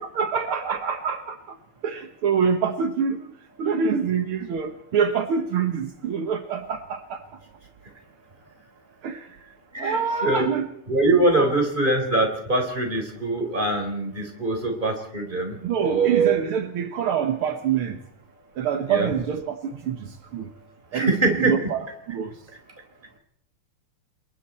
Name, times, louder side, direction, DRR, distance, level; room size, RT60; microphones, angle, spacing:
voice 1, 0.2-1.4 1.8-3.2 3.6-7.2 9.0-9.2 9.8-10.6 11.4-11.5 15.6-18.0 18.6-20.0 20.3-20.5 20.9-21.1 21.4-21.8 22.1-22.3, right 7 dB, 75° right, 7 dB, 2.1 m, -25 dB
voice 2, 9.7-10.5 10.9-16.4 18.9-19.1 20.9-21.6, right 2 dB, 20° right, 3 dB, 4.3 m, -23 dB
29.5 x 22.0 x 4.4 m, 0.69 s
omnidirectional pair, 2.4 m